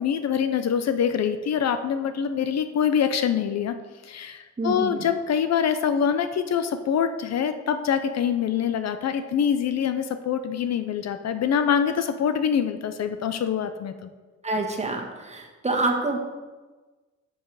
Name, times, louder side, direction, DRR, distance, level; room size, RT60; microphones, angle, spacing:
voice 1, 0.0-3.8 4.0-14.1, left 8 dB, 60° left, 10 dB, 0.7 m, -25 dB
voice 2, 4.6-5.1 14.4-16.2, right 3 dB, 20° right, 1 dB, 1.6 m, -27 dB
7.8 x 7.4 x 4.8 m, 1.3 s
cardioid pair, 90°, 30 cm